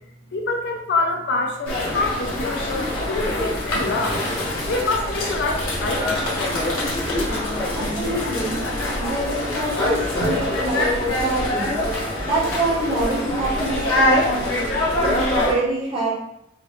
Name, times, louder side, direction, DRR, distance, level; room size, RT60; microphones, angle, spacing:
voice 1, 0.3-4.2 4.7-6.3, left 3 dB, 55° left, 2 dB, 0.5 m, -26 dB
sound 1, 1.7-15.5, left 1 dB, 85° left, 1.3 m, -24 dB
voice 2, 7.7-8.6 8.9-11.7 12.2-14.6 15.0-16.1, right 2 dB, 25° right, -8 dB, 1.4 m, -26 dB
4.7 x 2.6 x 2.5 m, 0.81 s
head